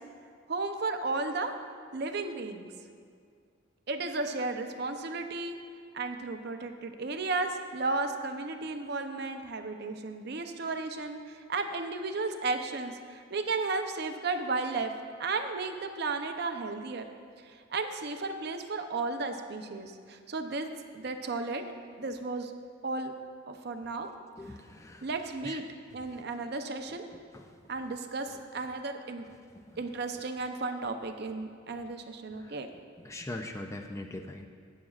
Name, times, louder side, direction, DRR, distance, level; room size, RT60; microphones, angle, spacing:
voice 1, 0.5-1.5 1.9-2.7 3.9-5.6 5.9-14.9 15.2-17.1 17.4-20.7 20.9-21.6 22.0-22.5 22.8-23.1 23.5-24.1 25.0-25.6 25.9-27.1 27.7-29.2 29.8-32.7, right 3 dB, 50° right, 6 dB, 0.6 m, -34 dB
voice 2, 24.4-25.1 25.4-25.6 27.3-27.6 29.5-29.8 32.4-32.6 33.0-34.5, left 1 dB, 15° left, 4 dB, 0.3 m, -41 dB
14.5 x 8.7 x 2.4 m, 2.1 s
head